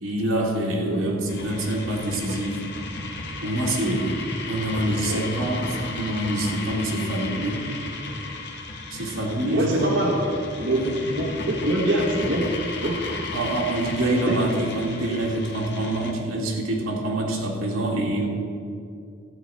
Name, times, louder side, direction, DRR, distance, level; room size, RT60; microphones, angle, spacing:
voice 1, 0.0-2.6 3.4-4.2 4.5-7.7 8.9-9.9 10.7-11.0 13.3-18.3, right 1 dB, 90° right, -2 dB, 2.2 m, -26 dB
sound 1, 1.3-16.1, left 3 dB, 55° left, 1.4 m, -34 dB
voice 2, 4.8-5.2 9.5-10.2 10.6-10.8 11.1-12.5 12.8-13.0 14.2-14.4, right 1 dB, 60° right, -3 dB, 1.3 m, -24 dB
13.5 x 4.9 x 8.8 m, 2.5 s
head